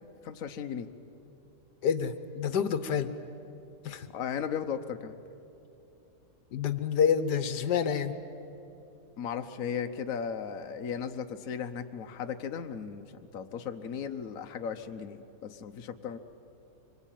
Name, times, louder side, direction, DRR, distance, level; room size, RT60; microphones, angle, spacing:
voice 1, 0.2-0.9 4.1-5.2 9.2-16.2, left 7 dB, 60° left, 6 dB, 1.3 m, -36 dB
voice 2, 1.8-3.1 3.8-4.1 6.5-8.1, left 7 dB, 80° left, 11 dB, 1.5 m, -28 dB
25.0 x 22.5 x 9.1 m, 2.8 s
omnidirectional pair, 1.8 m